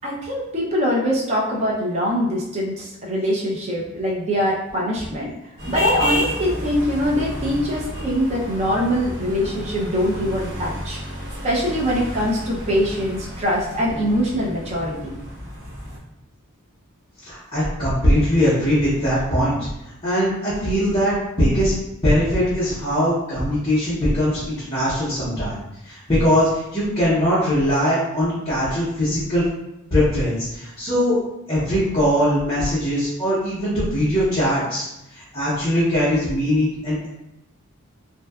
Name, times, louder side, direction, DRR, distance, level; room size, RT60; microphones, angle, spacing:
voice 1, 0.0-5.3 5.7-11.0 11.4-15.2, equal, 30° right, -4 dB, 0.4 m, -23 dB
sound 1, 5.6-16.0, equal, 60° right, 1.0 m, -31 dB
voice 2, 17.2-25.6 25.8-29.4 29.9-31.2 31.5-34.9 35.1-37.1, equal, 25° left, -12 dB, 0.7 m, -21 dB
2.6 x 2.1 x 2.2 m, 0.90 s
head